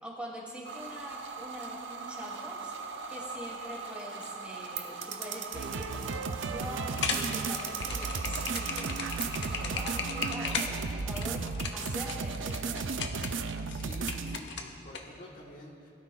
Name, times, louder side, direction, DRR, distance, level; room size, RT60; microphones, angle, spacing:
voice 1, 0.0-2.7 3.1-9.1 9.5-12.9, equal, 5° right, -4 dB, 2.6 m, -43 dB
sound 1, 0.6-10.4, right 5 dB, 70° right, 1.1 m, -40 dB
sound 2, 5.5-14.4, right 4 dB, 85° right, 0.6 m, -35 dB
sound 3, 6.9-15.0, left 5 dB, 65° left, 1.1 m, -36 dB
voice 2, 13.7-15.9, left 1 dB, 45° left, -3 dB, 1.4 m, -48 dB
21.5 x 13.0 x 2.4 m, 2.5 s
head